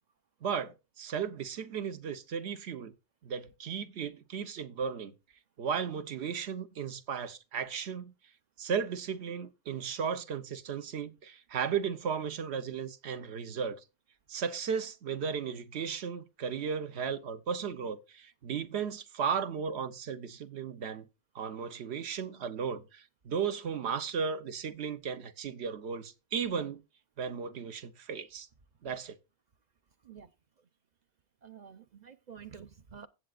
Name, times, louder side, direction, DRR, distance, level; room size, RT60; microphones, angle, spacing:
voice 1, 0.4-2.9 3.2-5.1 5.6-8.1 8.6-13.8 14.3-21.1 21.3-26.8 27.2-28.5 28.8-29.2, right 6 dB, 70° right, 1.1 m, -35 dB
voice 2, 31.4-33.1, right 7 dB, 50° right, 0.6 m, -49 dB
15.5 x 7.7 x 2.4 m
omnidirectional pair, 1.2 m